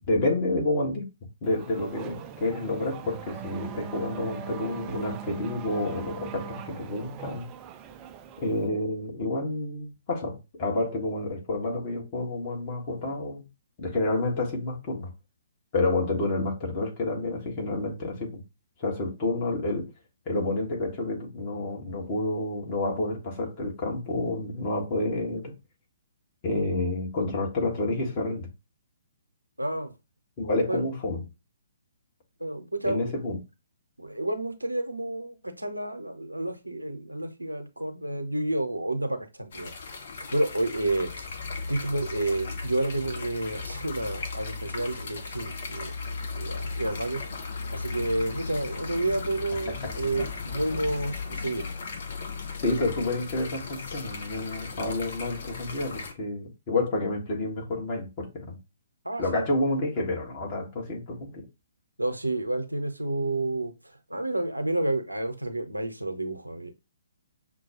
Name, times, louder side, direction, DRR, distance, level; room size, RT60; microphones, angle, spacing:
voice 1, 0.1-1.0 1.4-7.5 8.4-13.4 13.8-15.1 15.7-18.4 18.8-19.9 20.2-25.5 26.4-28.5 30.4-31.2 32.8-33.4 49.7-49.9 52.6-58.6 59.2-61.4, left 2 dB, 30° left, 1.5 m, -29 dB
Race car auto racing / Accelerating revving vroom, 1.4-8.7, right 8 dB, 20° right, 0.4 m, -40 dB
voice 2, 29.6-29.9 30.7-30.8 32.4-33.1 34.0-39.7 40.1-41.3 41.7-45.9 46.4-47.4 47.7-51.6 59.0-59.5 62.0-66.7, right 2 dB, 85° right, 0.8 m, -30 dB
sound 1, 39.5-56.1, left 4 dB, 45° left, 0.7 m, -36 dB
6.1 x 2.3 x 2.9 m
figure-of-eight pair, 125°, 0 cm